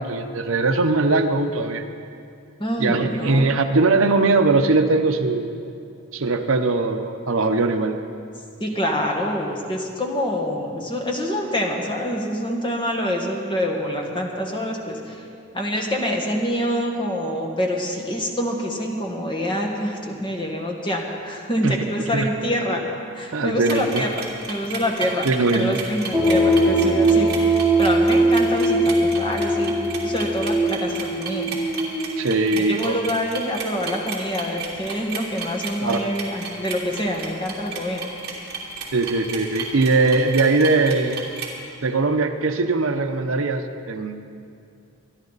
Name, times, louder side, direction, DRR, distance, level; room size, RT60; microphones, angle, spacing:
voice 1, 0.0-1.8 2.8-5.5 6.1-8.0 21.6-21.8 22.1-22.3 23.3-24.0 25.2-25.8 32.2-33.0 35.8-36.0 38.9-41.3 41.8-44.2, right 3 dB, 65° right, 7 dB, 0.8 m, -20 dB
voice 2, 2.6-3.5 8.6-15.2 15.5-22.8 23.1-25.3 25.5-29.8 30.0-31.6 32.5-38.0, equal, 20° left, 0 dB, 1.5 m, -26 dB
sound 1, 23.6-41.5, right 5 dB, 45° right, 2.7 m, -33 dB
sound 2, 26.1-32.6, right 1 dB, 5° right, 1.4 m, -20 dB
26.0 x 10.5 x 4.0 m, 2.4 s
head